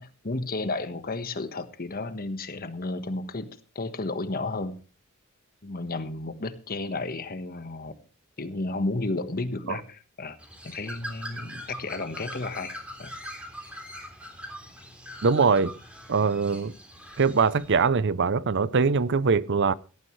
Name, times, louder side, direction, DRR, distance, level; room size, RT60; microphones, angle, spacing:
voice 1, 0.0-3.5 3.7-4.8 5.6-7.9 8.4-10.4 10.6-12.7 13.0-13.1, left 2 dB, 45° left, 1.4 m, -32 dB
Bird, 10.4-17.8, equal, 5° right, 3.4 m, -42 dB
voice 2, 15.2-15.7 16.1-16.7 17.2-19.7, right 5 dB, 55° right, 0.6 m, -22 dB
18.0 x 13.5 x 3.2 m
head